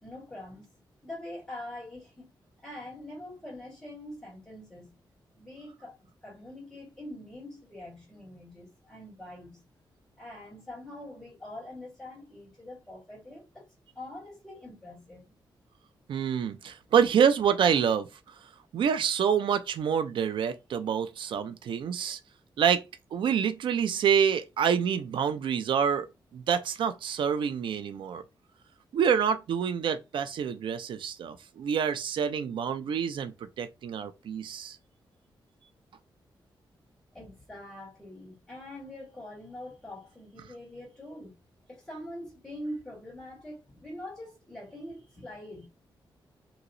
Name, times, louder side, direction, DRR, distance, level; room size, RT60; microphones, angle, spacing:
voice 1, 0.0-2.3 2.6-4.9 5.3-9.6 10.2-13.7 13.9-15.3 37.1-41.4 41.7-45.7, left 1 dB, 5° left, 2.1 m, -44 dB
voice 2, 16.1-18.1 18.7-22.2 22.6-22.8 23.1-26.1 26.3-28.2 28.9-34.8, right 7 dB, 75° right, 0.5 m, -27 dB
3.0 x 2.8 x 2.6 m
wide cardioid pair, 165°, 8 cm